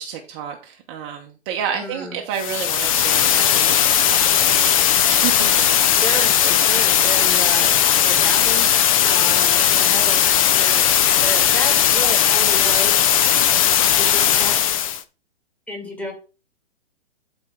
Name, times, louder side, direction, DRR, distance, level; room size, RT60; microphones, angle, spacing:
voice 1, 0.0-5.7, right 8 dB, 25° right, 2 dB, 0.9 m, -30 dB
voice 2, 1.7-2.2 5.8-10.2 10.5-10.9 11.2-13.1 13.9-14.6 15.7-16.1, left 1 dB, 5° left, 1 dB, 2.2 m, -31 dB
sound 1, 2.3-15.0, left 10 dB, 30° left, 0.6 m, -17 dB
12.0 x 4.5 x 3.6 m, 0.33 s
hypercardioid pair, 150°, 34 cm